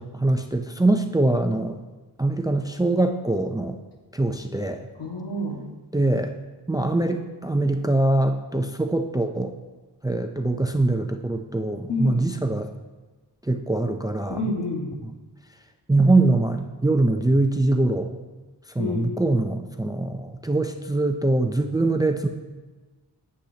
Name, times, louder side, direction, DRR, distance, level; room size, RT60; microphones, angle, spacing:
voice 1, 0.0-1.8 2.2-3.8 4.1-4.8 5.9-6.3 6.7-9.5 10.0-12.7 13.4-14.4 15.9-18.1 18.7-22.3, right 2 dB, 10° right, 5 dB, 0.4 m, -23 dB
voice 2, 5.0-5.6 11.9-12.2 14.3-14.9 18.8-19.1, left 2 dB, 75° left, -1 dB, 1.8 m, -28 dB
12.0 x 8.5 x 2.8 m, 1.2 s
wide cardioid pair, 135°, 41 cm